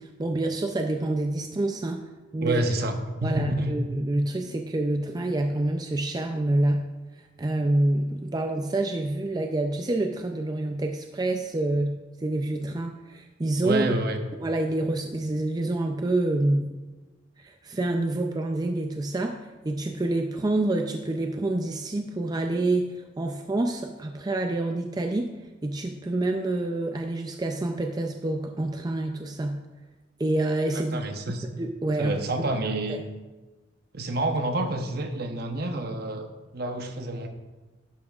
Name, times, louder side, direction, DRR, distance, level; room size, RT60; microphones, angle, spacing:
voice 1, 0.0-2.0 2.3-2.6 3.2-6.8 7.4-13.8 14.4-16.7 17.4-25.3 25.6-29.6 30.2-31.1 31.6-32.5 32.9-33.0, right 2 dB, 20° right, 4 dB, 0.4 m, -27 dB
voice 2, 2.4-3.7 13.6-14.2 30.7-31.5 32.0-33.0 33.9-36.3 36.5-37.3, right 2 dB, 55° right, 6 dB, 0.9 m, -28 dB
11.5 x 8.5 x 2.4 m, 1.2 s
head